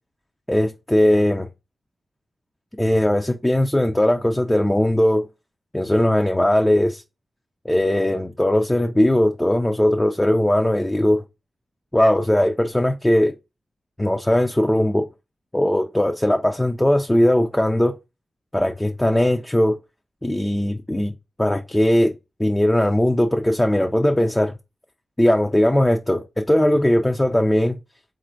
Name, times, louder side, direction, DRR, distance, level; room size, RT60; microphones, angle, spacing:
voice 1, 0.5-1.5 2.8-5.3 5.7-7.0 7.6-11.2 11.9-13.3 14.0-15.1 15.5-18.0 18.5-19.8 20.2-21.1 21.4-22.1 22.4-24.5 25.2-27.8, left 1 dB, 10° left, 0.4 m, -19 dB
4.1 x 2.5 x 4.3 m
wide cardioid pair, 100°, 0 cm